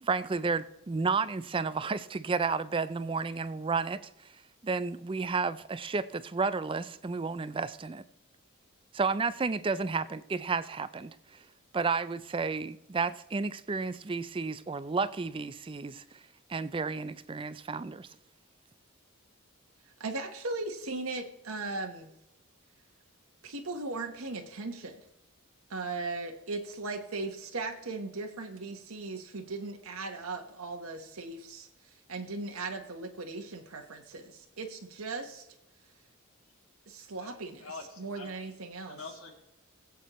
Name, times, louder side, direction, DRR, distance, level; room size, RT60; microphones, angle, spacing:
voice 1, 0.0-4.0 4.6-8.0 8.9-11.2 11.7-16.0 16.5-18.1, right 4 dB, 25° right, 0.4 m, -31 dB
voice 2, 20.0-22.1 23.4-25.0 25.7-35.5 36.9-37.7 38.0-39.0, right 3 dB, 85° right, 1.2 m, -38 dB
voice 3, 37.2-38.4 38.9-39.3, left 3 dB, 75° left, 2.5 m, -45 dB
20.0 x 8.3 x 3.1 m
head